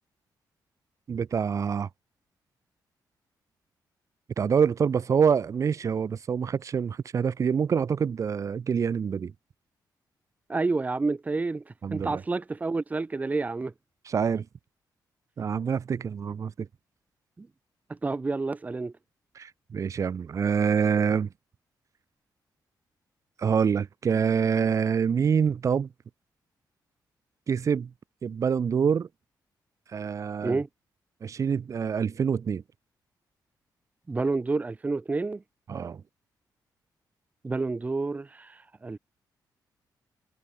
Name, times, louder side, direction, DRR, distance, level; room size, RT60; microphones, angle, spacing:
voice 1, 1.1-1.9 4.4-9.3 11.8-12.2 14.0-14.4 15.4-16.7 19.3-21.3 23.4-25.9 27.5-27.9 28.2-29.1 29.9-30.6 31.2-32.6 35.7-36.0, right 6 dB, 45° right, 4.5 m, -26 dB
voice 2, 10.5-13.7 17.4-17.5 17.9-18.9 30.4-30.7 34.1-35.4 37.4-39.0, right 3 dB, 20° right, 4.9 m, -29 dB
wide cardioid pair, 155°, 7 cm